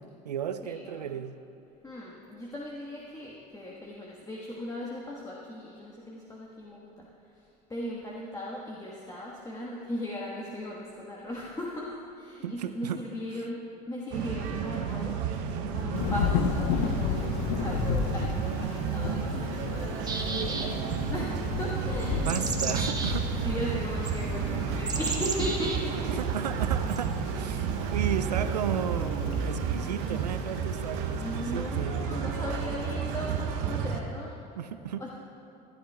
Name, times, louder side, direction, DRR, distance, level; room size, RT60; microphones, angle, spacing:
voice 1, 0.0-1.3 12.4-13.0 22.3-23.3 26.1-32.6 34.6-35.0, right 9 dB, 90° right, 11 dB, 0.5 m, -34 dB
voice 2, 0.6-1.2 1.8-15.5 15.7-20.1 20.5-22.3 23.4-26.0 31.1-35.1, left 1 dB, 15° left, -4 dB, 1.4 m, -38 dB
sound 1, 14.1-34.0, right 7 dB, 60° right, 0.9 m, -31 dB
Thunder / Rain, 15.9-31.5, left 7 dB, 65° left, 0.7 m, -34 dB
sound 2, 20.0-21.0 22.0-23.2 24.1-24.2 24.9-25.8 26.9-27.0, right 4 dB, 20° right, 1.2 m, -33 dB
15.5 x 11.5 x 2.3 m, 2.8 s
hypercardioid pair, 75°, 20 cm